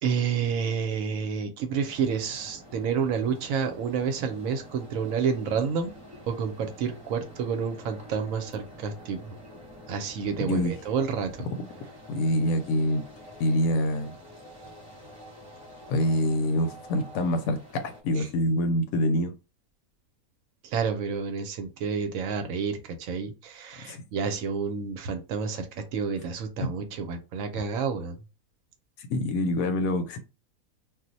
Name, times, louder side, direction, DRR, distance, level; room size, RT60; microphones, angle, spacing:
voice 1, 0.0-5.9 6.3-9.4 9.9-11.5 18.2-18.3 20.6-28.2, right 6 dB, 70° right, 0.9 m, -29 dB
sound 1, 1.8-18.0, equal, 10° right, 1.1 m, -48 dB
voice 2, 12.1-13.0 13.4-14.1 15.9-19.3 23.8-24.0 29.1-30.2, left 1 dB, 75° left, 1.0 m, -25 dB
2.4 x 2.0 x 3.9 m
omnidirectional pair, 1.6 m